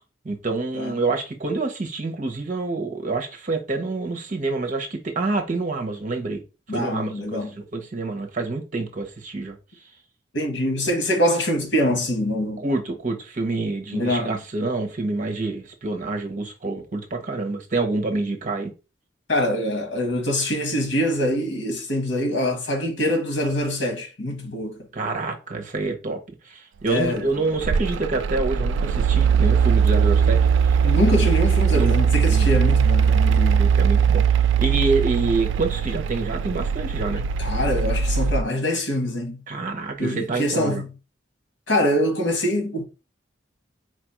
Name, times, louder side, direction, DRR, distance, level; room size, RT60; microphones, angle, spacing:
voice 1, 0.2-6.4 6.7-9.6 12.6-18.7 24.9-30.8 31.7-32.0 32.3-32.5 33.5-37.3 39.5-40.8, right 3 dB, 45° right, 0.9 m, -27 dB
voice 2, 6.7-7.5 10.3-12.6 13.9-14.3 19.3-24.8 26.9-27.3 30.8-33.7 37.4-39.4 40.0-40.9 41.7-42.8, left 1 dB, 85° left, 1.5 m, -24 dB
Mechanical fan, 27.1-38.4, right 6 dB, 80° right, 0.3 m, -20 dB
4.5 x 2.5 x 4.5 m
head